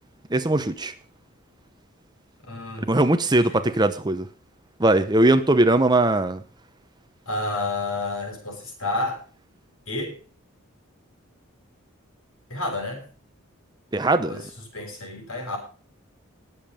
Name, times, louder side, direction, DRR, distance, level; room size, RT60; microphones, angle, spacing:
voice 1, 0.3-0.9 2.9-4.3 4.8-6.4 13.9-14.4, right 2 dB, 20° right, 0.9 m, -20 dB
voice 2, 2.5-2.9 3.3-3.7 7.3-9.2 9.9-10.2 12.5-13.0 14.3-14.5 14.7-15.6, left 2 dB, 75° left, 6.4 m, -30 dB
20.0 x 7.5 x 5.1 m
head